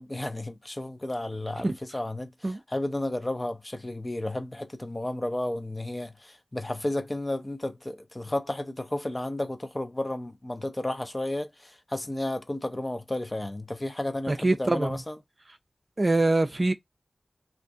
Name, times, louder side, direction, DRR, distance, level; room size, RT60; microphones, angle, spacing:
voice 1, 0.0-15.1, left 1 dB, 30° left, 0.6 m, -32 dB
voice 2, 14.3-15.0 16.0-16.7, right 2 dB, 45° right, 0.4 m, -24 dB
2.5 x 2.4 x 2.6 m
cardioid pair, 40°, 0 cm